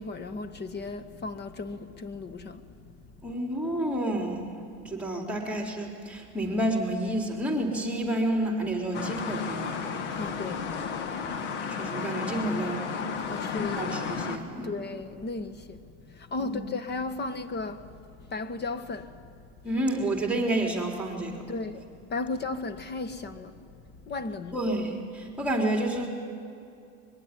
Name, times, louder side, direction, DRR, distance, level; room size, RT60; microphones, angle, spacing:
voice 1, 0.0-3.0 10.2-10.7 13.2-14.0 14.6-15.8 16.0-17.9 18.3-19.2 21.5-23.5 24.1-24.6, left 3 dB, 30° left, 1.7 m, -35 dB
voice 2, 3.2-4.6 4.8-9.8 11.2-11.4 11.7-12.8 13.7-14.7 16.4-16.7 19.6-21.4 24.5-26.1, right 1 dB, 5° right, 3.9 m, -29 dB
sound 1, 8.9-14.4, left 6 dB, 85° left, 2.1 m, -33 dB
24.0 x 22.0 x 10.0 m
supercardioid pair, 105°, 35 cm